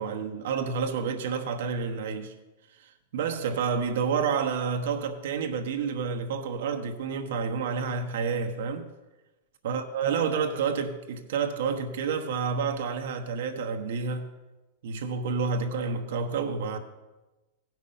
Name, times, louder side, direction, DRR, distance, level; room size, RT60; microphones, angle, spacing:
voice 1, 0.0-2.3 3.1-8.9 9.6-14.3 14.8-16.8, right 5 dB, 70° right, 1.1 m, -29 dB
16.0 x 6.0 x 5.6 m
supercardioid pair, 155°, 0 cm